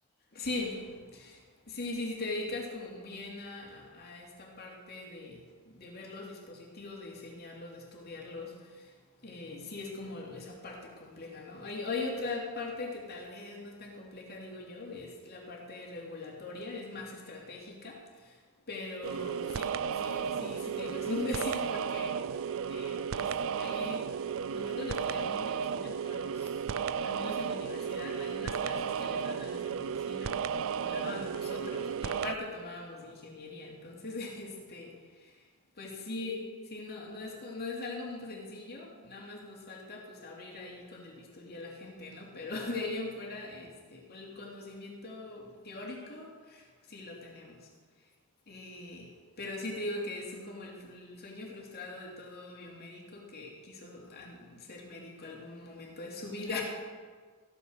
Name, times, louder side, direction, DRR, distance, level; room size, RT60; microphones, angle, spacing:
voice 1, 0.3-26.6 27.0-35.4 35.8-47.7 48.5-56.6, left 2 dB, 45° left, -1 dB, 2.8 m, -41 dB
sound 1, 19.0-32.3, right 7 dB, 65° right, 0.4 m, -34 dB
15.0 x 9.7 x 6.5 m, 1.5 s
head